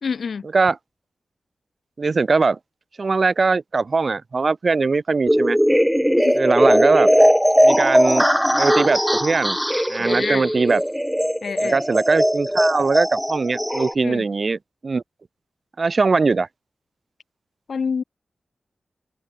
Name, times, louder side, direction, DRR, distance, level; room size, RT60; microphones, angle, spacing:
voice 1, 0.0-0.5 6.2-6.4 10.0-10.5 11.4-11.8 14.0-14.2 17.7-18.0, left 5 dB, 75° left, 1.4 m, -27 dB
voice 2, 2.0-2.6 3.0-5.6 6.3-7.1 7.6-8.3 8.5-9.6 9.9-10.8 11.6-15.0 15.8-16.5, right 4 dB, 55° right, 0.7 m, -20 dB
sound 1, 5.3-13.9, equal, ahead, 0.4 m, -19 dB
cardioid pair, 65°, 0 cm